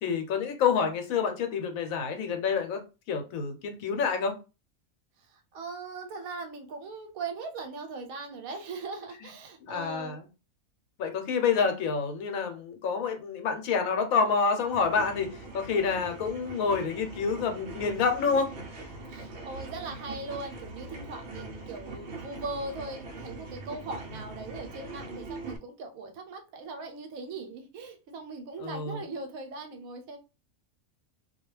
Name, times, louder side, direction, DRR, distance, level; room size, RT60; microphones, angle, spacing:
voice 1, 0.0-2.8 3.1-4.4 9.7-10.2 11.0-18.5 28.6-29.0, left 5 dB, 80° left, 1.0 m, -28 dB
voice 2, 5.2-10.2 19.1-30.2, right 3 dB, 85° right, 1.1 m, -39 dB
sound 1, 14.6-25.6, right 2 dB, 60° right, 0.8 m, -42 dB
2.3 x 2.3 x 3.0 m
omnidirectional pair, 1.4 m